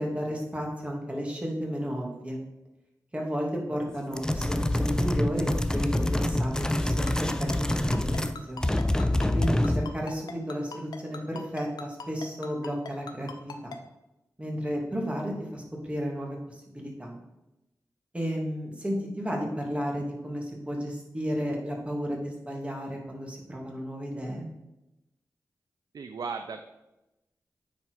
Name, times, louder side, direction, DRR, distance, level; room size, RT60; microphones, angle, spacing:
voice 1, 0.0-2.4 3.1-7.5 7.7-8.6 9.3-13.8 14.4-17.2 18.1-24.5, equal, 20° right, -1 dB, 2.6 m, -33 dB
sound 1, 4.1-8.4 8.6-9.9, left 1 dB, 10° left, 0.6 m, -26 dB
Ringtone, 7.1-13.8, left 5 dB, 90° left, 0.7 m, -40 dB
voice 2, 25.9-26.6, right 5 dB, 75° right, 7 dB, 0.5 m, -35 dB
9.6 x 4.3 x 4.9 m, 0.95 s
cardioid pair, 50°, 7 cm